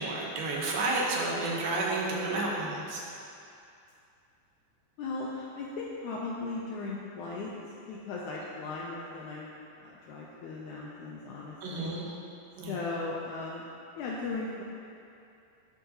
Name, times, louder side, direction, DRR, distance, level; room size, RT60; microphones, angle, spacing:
voice 1, 0.0-3.0 11.6-12.1 12.6-12.8, right 2 dB, 80° right, -3 dB, 2.7 m, -31 dB
voice 2, 5.0-7.5 7.9-9.5 9.8-11.9 12.7-13.6 14.0-14.6, left 3 dB, 90° left, -4 dB, 1.7 m, -37 dB
12.5 x 4.7 x 2.8 m, 2.6 s
omnidirectional pair, 4.1 m